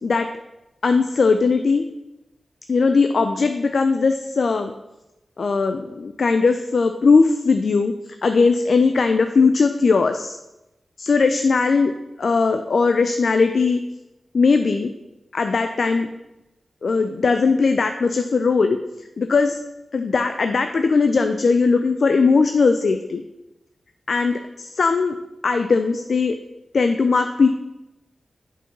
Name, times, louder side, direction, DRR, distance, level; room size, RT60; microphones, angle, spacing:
voice 1, 0.8-1.8 2.7-4.7 5.4-7.9 8.2-10.4 11.0-11.9 12.2-13.8 14.3-14.9 15.3-16.1 16.8-18.8 19.2-19.6 19.9-23.2 24.1-25.2 25.4-26.4 26.7-27.5, left 4 dB, 70° left, 7 dB, 0.5 m, -19 dB
7.1 x 4.7 x 5.2 m, 0.96 s
cardioid pair, 40°, 0 cm